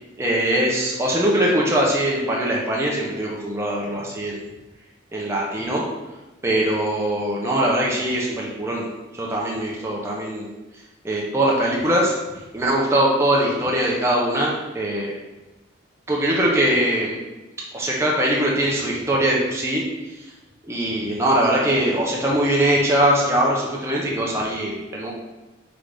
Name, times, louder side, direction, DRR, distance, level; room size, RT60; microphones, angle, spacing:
voice 1, 0.2-4.4 5.1-5.9 6.4-8.9 9.2-10.5 11.0-12.2 12.5-15.1 16.1-17.2 17.7-19.8 20.7-25.1, right 1 dB, 15° right, -4 dB, 0.5 m, -21 dB
3.9 x 3.6 x 3.3 m, 1.1 s
head